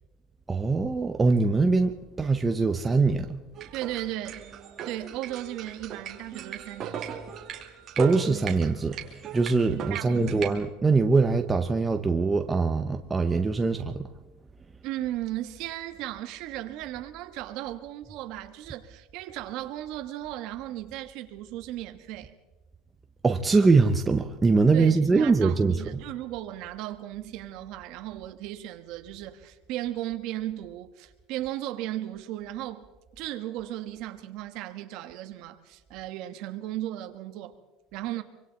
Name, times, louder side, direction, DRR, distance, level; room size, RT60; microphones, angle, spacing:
voice 1, 0.5-3.4 8.0-14.1 23.2-26.0, right 4 dB, 10° right, 0.6 m, -23 dB
Grup Toni, 3.5-10.5, right 7 dB, 30° right, 2.2 m, -38 dB
voice 2, 3.7-4.4 4.8-7.2 9.7-10.3 14.8-22.3 24.7-32.9 33.2-37.6 37.9-38.2, right 14 dB, 50° right, 1.5 m, -36 dB
25.5 x 25.0 x 4.1 m
cardioid pair, 175°, 0 cm